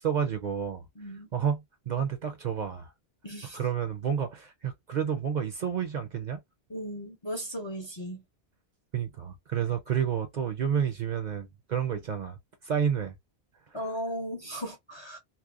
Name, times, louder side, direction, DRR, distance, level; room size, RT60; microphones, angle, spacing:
voice 1, 0.0-0.9 1.3-2.9 3.5-6.4 8.9-12.4 12.6-13.1, right 8 dB, 55° right, 0.6 m, -30 dB
voice 2, 1.0-1.3 3.2-3.6 6.7-8.2 13.7-15.2, equal, 35° left, 0.5 m, -36 dB
2.8 x 2.1 x 2.3 m
omnidirectional pair, 1.1 m